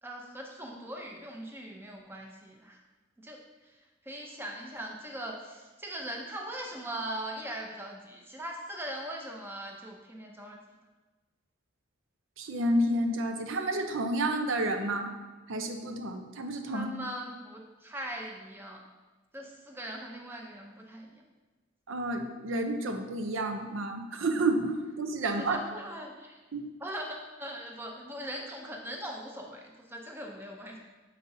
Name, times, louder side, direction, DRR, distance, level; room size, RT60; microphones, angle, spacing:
voice 1, 0.0-2.8 3.2-10.6 16.7-18.8 19.3-21.2 25.2-26.4 26.8-30.8, right 1 dB, 10° right, 0 dB, 0.7 m, -40 dB
voice 2, 12.4-15.1 15.5-16.9 21.9-25.6 26.5-26.7, right 1 dB, 85° right, 5 dB, 0.6 m, -30 dB
6.9 x 5.3 x 2.7 m, 1.2 s
head